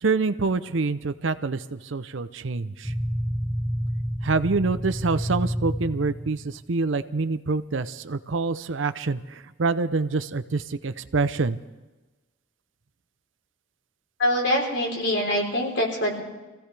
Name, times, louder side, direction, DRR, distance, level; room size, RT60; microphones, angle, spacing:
voice 1, 0.0-2.9 4.2-11.6, right 3 dB, 70° right, 12 dB, 0.7 m, -26 dB
sound 1, 2.8-6.6, equal, 10° right, 0.5 m, -29 dB
voice 2, 14.2-16.2, equal, 60° left, 0 dB, 3.8 m, -24 dB
25.5 x 16.0 x 3.4 m, 1.1 s
head